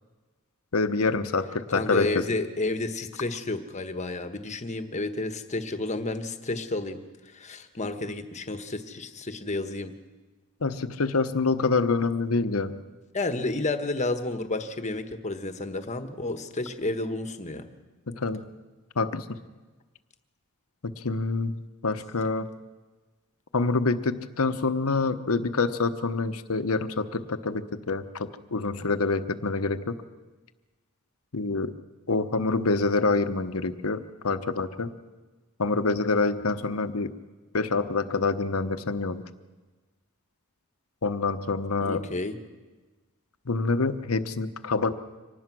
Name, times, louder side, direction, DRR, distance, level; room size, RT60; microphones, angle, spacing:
voice 1, 0.7-2.3 10.6-12.8 18.1-18.5 19.0-19.4 20.8-21.5 21.8-22.5 23.5-29.9 31.3-31.7 32.1-34.9 35.6-37.1 37.5-39.2 41.0-42.0 43.5-45.0, left 3 dB, 75° left, 11 dB, 1.0 m, -26 dB
voice 2, 1.7-9.9 13.1-17.7 41.8-42.4, left 2 dB, 35° left, 8 dB, 1.3 m, -31 dB
25.0 x 19.0 x 6.2 m, 1.3 s
head